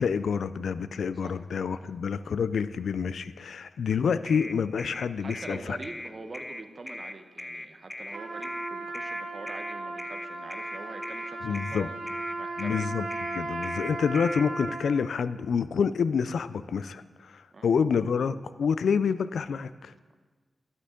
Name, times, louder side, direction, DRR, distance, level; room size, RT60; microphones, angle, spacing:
voice 1, 0.0-5.8 11.4-11.9 12.6-19.9, left 6 dB, 80° left, 14 dB, 0.3 m, -28 dB
sound 1, 4.3-14.4, left 1 dB, 15° left, 0.4 m, -40 dB
voice 2, 5.2-11.9 12.4-12.8 17.5-17.7, right 3 dB, 40° right, 7 dB, 0.9 m, -44 dB
Trumpet, 8.1-15.1, right 2 dB, 70° right, 2.4 m, -36 dB
11.5 x 10.0 x 3.7 m, 1.4 s
wide cardioid pair, 90°, 0 cm